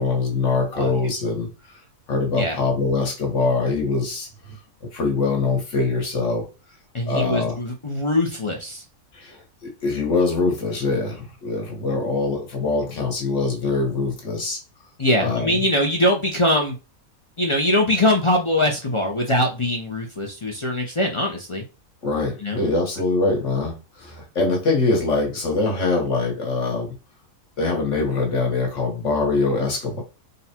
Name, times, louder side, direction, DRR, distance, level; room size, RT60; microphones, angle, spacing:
voice 1, 0.0-1.5 2.1-4.6 4.9-6.5 7.1-7.6 9.1-14.6 15.2-15.6 22.0-26.9 27.6-30.0, left 3 dB, 55° left, 1.5 m, -23 dB
voice 2, 6.9-8.8 15.0-16.7 17.4-21.6 22.4-22.6, left 1 dB, 40° left, 0.4 m, -22 dB
3.9 x 2.2 x 4.3 m
omnidirectional pair, 1.5 m